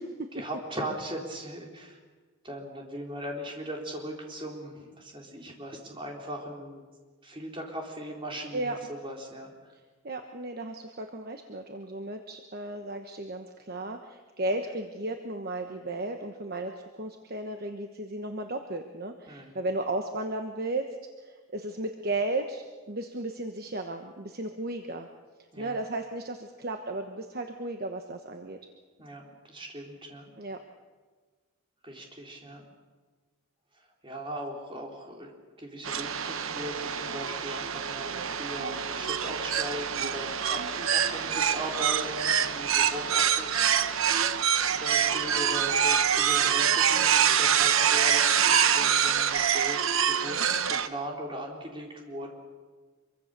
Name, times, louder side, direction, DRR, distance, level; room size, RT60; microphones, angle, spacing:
voice 1, 0.3-2.0 2.4-6.8 7.2-9.5 19.3-19.6 25.5-25.7 29.0-30.3 31.8-32.6 33.7-35.3 35.6-52.3, right 1 dB, 25° right, 0 dB, 4.1 m, -39 dB
voice 2, 10.0-21.0 21.2-25.1 25.6-28.6 30.4-30.6, right 2 dB, 45° right, 5 dB, 1.2 m, -34 dB
sound 1, 35.8-50.9, right 8 dB, 65° right, 1.0 m, -25 dB
25.5 x 24.0 x 6.8 m, 1.4 s
head